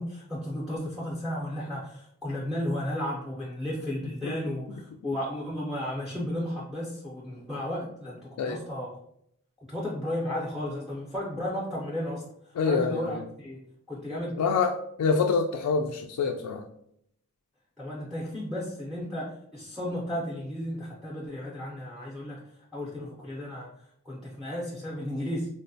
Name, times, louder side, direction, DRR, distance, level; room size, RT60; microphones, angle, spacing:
voice 1, 0.0-8.9 9.7-13.6 13.9-14.4 17.8-22.4 22.7-23.7 24.1-25.5, left 1 dB, ahead, -5 dB, 0.4 m, -34 dB
voice 2, 12.6-13.1 14.4-16.7, left 5 dB, 90° left, 4 dB, 0.3 m, -26 dB
3.6 x 2.1 x 2.6 m, 0.72 s
head